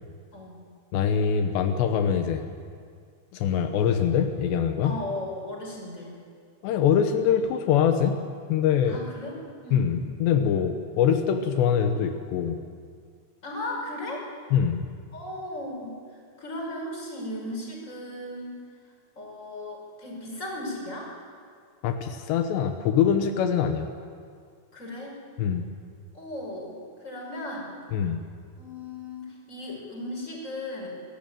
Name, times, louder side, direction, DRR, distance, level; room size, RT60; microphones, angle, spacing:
voice 1, 0.9-2.5 3.3-5.0 6.6-8.2 8.5-9.0 9.7-12.6 14.5-14.8 21.8-23.9 25.4-25.7 27.9-28.2, left 8 dB, 85° left, 6 dB, 3.3 m, -23 dB
voice 2, 4.8-6.2 8.9-9.9 13.4-14.2 15.1-16.0 16.4-18.6 19.2-21.1 24.7-25.2 26.1-26.7 27.0-27.7 28.6-30.9, left 1 dB, 15° left, -1 dB, 5.6 m, -36 dB
25.0 x 15.0 x 9.2 m, 2.1 s
omnidirectional pair, 4.9 m